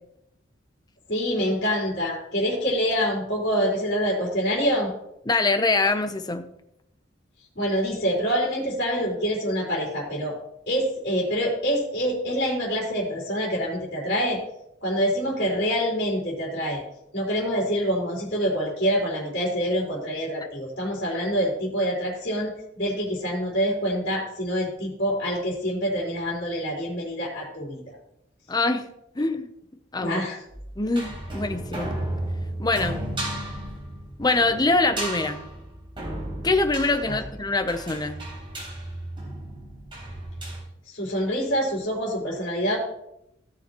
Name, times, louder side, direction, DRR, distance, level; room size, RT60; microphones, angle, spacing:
voice 1, 1.1-4.9 7.6-10.4 10.7-14.4 14.8-16.8 17.1-28.0 30.0-30.4 37.1-37.2 40.9-42.8, equal, 60° left, -5 dB, 3.9 m, -26 dB
voice 2, 5.3-6.5 28.5-28.9 29.2-29.5 29.9-30.2 30.8-31.9 32.6-33.0 34.2-35.4 36.4-38.2, left 3 dB, 20° left, 8 dB, 0.8 m, -24 dB
sound 1, 30.5-40.6, right 1 dB, 25° right, 3.9 m, -34 dB
16.5 x 7.1 x 3.0 m, 0.79 s
head